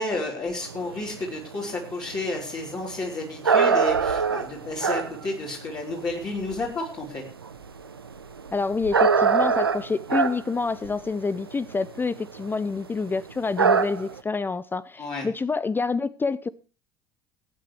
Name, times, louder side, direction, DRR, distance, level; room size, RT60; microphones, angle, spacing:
voice 1, 0.0-7.2 15.0-15.3, left 2 dB, 35° left, 4.1 m, -31 dB
sound 1, 0.6-6.7 7.1-12.5 12.8-12.9 13.2-13.3 13.6-14.2, right 5 dB, 90° right, 0.8 m, -23 dB
voice 2, 8.5-16.5, left 4 dB, 15° left, 0.6 m, -27 dB
23.5 x 9.4 x 3.3 m
figure-of-eight pair, 70°, 12 cm